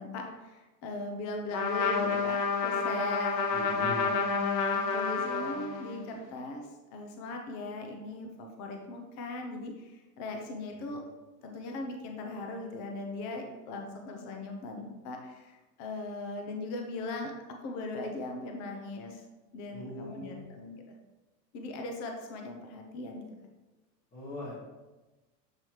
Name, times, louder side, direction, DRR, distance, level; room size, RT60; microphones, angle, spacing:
voice 1, 0.0-3.6 4.0-11.0 11.4-17.3 17.6-19.2 19.5-21.0 21.5-23.3, left 2 dB, 35° left, 2 dB, 0.8 m, -39 dB
Trumpet, 1.5-6.1, left 5 dB, 85° left, 1.1 m, -30 dB
voice 2, 3.5-4.0 10.8-10.9 19.7-20.4 24.1-24.6, left 2 dB, 20° left, -6 dB, 1.3 m, -40 dB
7.6 x 3.1 x 4.5 m, 1.1 s
supercardioid pair, 140°, 49 cm